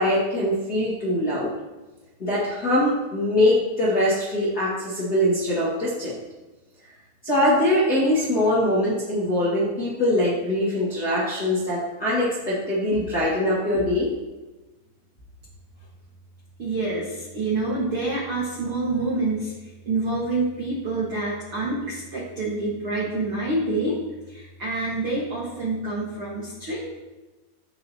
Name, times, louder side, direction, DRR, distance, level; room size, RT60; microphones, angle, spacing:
voice 1, 0.0-1.5 2.2-6.1 7.2-14.1, left 1 dB, 45° left, -9 dB, 1.2 m, -22 dB
voice 2, 16.6-24.0 24.3-26.9, right 2 dB, 70° right, -5 dB, 1.3 m, -27 dB
14.0 x 7.0 x 2.9 m, 1.1 s
omnidirectional pair, 5.3 m